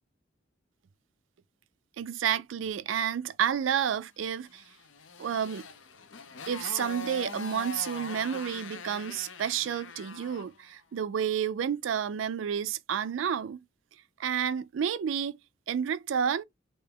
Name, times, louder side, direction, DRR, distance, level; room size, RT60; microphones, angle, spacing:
voice 1, 2.0-4.6 5.2-5.7 6.5-13.6 14.2-15.4 15.7-16.4, right 8 dB, 80° right, 0.4 m, -30 dB
Motorcycle, 4.5-10.6, left 4 dB, 90° left, 0.6 m, -42 dB
3.4 x 2.7 x 3.4 m
head